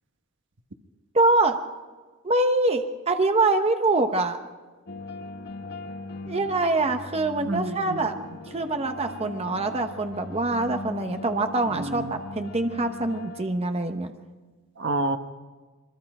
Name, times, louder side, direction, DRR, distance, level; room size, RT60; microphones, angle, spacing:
voice 1, 1.1-1.6 2.2-4.4 6.3-8.2 8.5-14.1, right 2 dB, 30° right, 6 dB, 1.0 m, -24 dB
sound 1, 4.9-13.4, left 2 dB, 55° left, 1.4 m, -39 dB
voice 2, 7.4-8.0 11.7-12.2 14.8-15.2, right 2 dB, 60° right, 7 dB, 1.2 m, -29 dB
24.0 x 22.5 x 4.9 m, 1.3 s
head